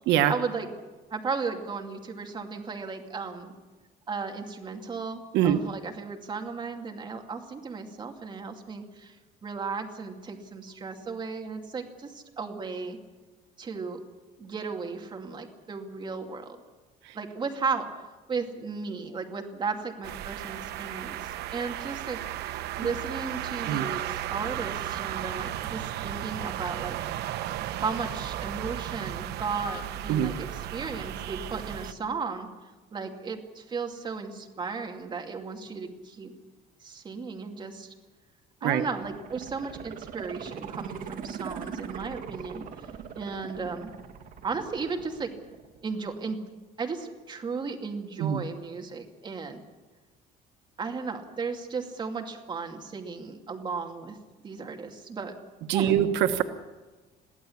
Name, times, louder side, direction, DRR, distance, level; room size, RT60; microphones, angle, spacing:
voice 1, 0.3-0.7 1.1-3.5 4.1-9.2 9.4-13.0 13.6-14.0 14.4-16.6 17.1-17.9 18.3-22.2 22.8-27.0 27.8-32.5 32.9-36.3 36.8-37.9 38.6-42.6 43.2-43.9 44.4-45.3 45.8-46.4 46.8-49.6 50.8-54.2 54.4-55.3 55.7-55.9, right 4 dB, 25° right, 3 dB, 2.5 m, -35 dB
sound 1, 20.0-31.9, right 12 dB, 70° right, 1.0 m, -35 dB
sound 2, 39.0-45.9 46.3-46.4, right 7 dB, 50° right, 2.2 m, -41 dB
voice 2, 55.7-56.4, right 11 dB, 85° right, 8 dB, 1.3 m, -23 dB
22.5 x 15.5 x 8.6 m, 1.3 s
cardioid pair, 150°, 18 cm